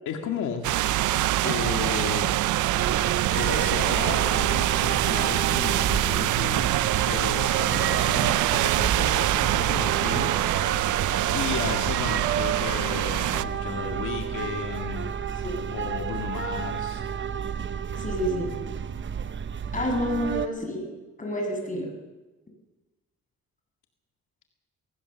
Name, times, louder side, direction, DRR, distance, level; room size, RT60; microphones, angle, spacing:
voice 1, 0.1-0.7 1.4-2.4 3.2-6.8 7.1-11.0 11.3-15.3 15.7-17.1, left 8 dB, 80° left, 3 dB, 2.1 m, -34 dB
sound 1, 0.6-13.4, right 15 dB, 80° right, 0.7 m, -24 dB
sound 2, 2.8-20.5, right 7 dB, 40° right, 0.9 m, -31 dB
voice 2, 18.0-18.5 19.7-20.9 21.2-21.9, equal, 25° left, 1 dB, 7.6 m, -28 dB
21.0 x 18.0 x 7.0 m, 1.2 s
cardioid pair, 90°, 30 cm